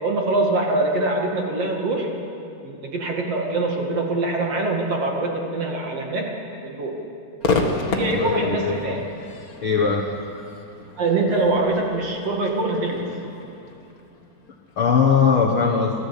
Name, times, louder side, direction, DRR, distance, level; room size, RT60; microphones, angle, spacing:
voice 1, 0.0-2.1 2.6-6.3 6.6-7.0 7.9-9.0 11.0-13.1, right 2 dB, 45° right, 0 dB, 2.8 m, -23 dB
Crowd / Fireworks, 7.4-14.7, left 3 dB, 45° left, 1.1 m, -30 dB
voice 2, 7.8-8.9 9.6-10.1 14.8-15.9, left 6 dB, 80° left, 0 dB, 1.1 m, -20 dB
26.0 x 15.5 x 8.6 m, 2.8 s
omnidirectional pair, 4.7 m